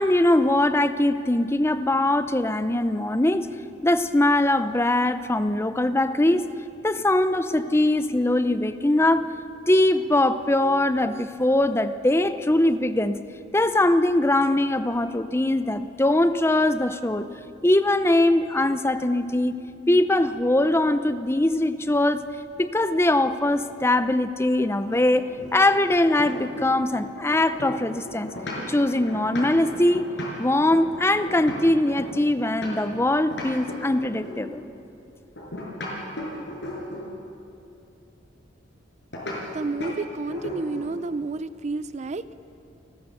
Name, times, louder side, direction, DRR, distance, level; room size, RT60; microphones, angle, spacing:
voice 1, 0.0-3.5 3.8-6.5 6.8-9.3 9.7-13.2 13.5-17.3 17.6-22.3 22.6-28.3 28.7-30.1 30.4-34.6, left 1 dB, 15° left, 11 dB, 0.6 m, -22 dB
sound 1, 24.9-26.9 27.2-33.0 33.3-34.5 35.4-37.1 39.1-39.4 39.8-40.0 40.3-40.9, left 1 dB, 65° left, 5.8 m, -35 dB
voice 2, 39.5-42.3, right 3 dB, 35° right, 14 dB, 0.5 m, -30 dB
30.0 x 13.0 x 6.8 m, 2.7 s
head